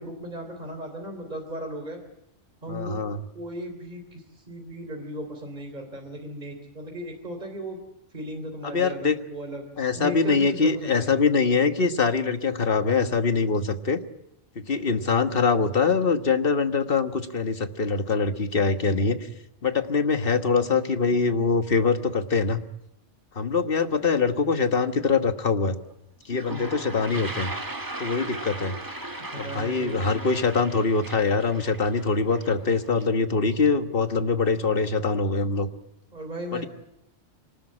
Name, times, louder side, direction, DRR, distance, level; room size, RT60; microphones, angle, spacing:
voice 1, 0.0-2.0 2.6-3.0 3.3-7.8 8.1-9.7 9.9-11.2 26.5-27.3 29.3-30.7 36.1-36.7, right 1 dB, 35° right, 4 dB, 3.6 m, -37 dB
voice 2, 2.7-3.2 8.6-9.2 9.8-14.0 14.5-19.2 19.6-22.6 23.3-25.8 26.3-27.5 28.0-28.8 29.3-35.7 36.5-36.7, left 4 dB, 50° left, 9 dB, 1.5 m, -23 dB
Toilet flush, 25.9-26.0 26.2-33.1, right 1 dB, 15° right, 1.6 m, -38 dB
25.5 x 19.5 x 8.7 m, 0.79 s
omnidirectional pair, 1.2 m